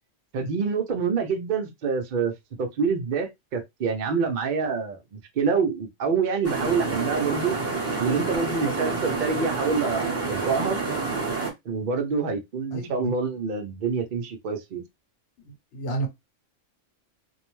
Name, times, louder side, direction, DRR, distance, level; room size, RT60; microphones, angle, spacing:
voice 1, 0.3-2.3 2.6-7.6 8.0-10.8 11.7-14.8, right 5 dB, 60° right, 0.5 m, -26 dB
sound 1, 6.4-11.5, right 3 dB, 15° right, 0.8 m, -28 dB
voice 2, 15.7-16.1, right 3 dB, 60° left, 1.0 m, -29 dB
2.6 x 2.1 x 3.0 m
omnidirectional pair, 1.3 m